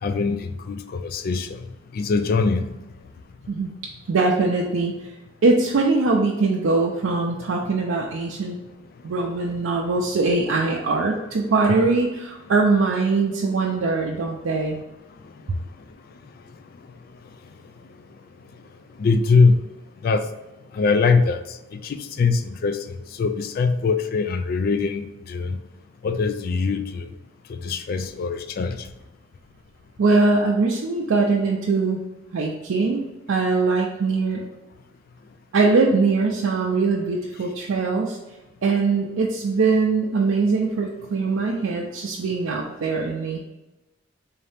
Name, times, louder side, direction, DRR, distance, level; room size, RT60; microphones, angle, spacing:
voice 1, 0.0-1.6 1.9-2.8 19.0-19.6 20.0-20.2 20.7-25.6 26.0-27.1 27.5-28.9, left 4 dB, 50° left, 9 dB, 0.3 m, -22 dB
voice 2, 4.1-5.1 5.4-8.6 9.0-14.8 30.0-32.0 32.3-33.0 33.3-34.4 35.5-38.2 38.6-43.4, right 3 dB, 85° right, -1 dB, 0.5 m, -22 dB
3.9 x 2.7 x 3.3 m, 1.0 s
head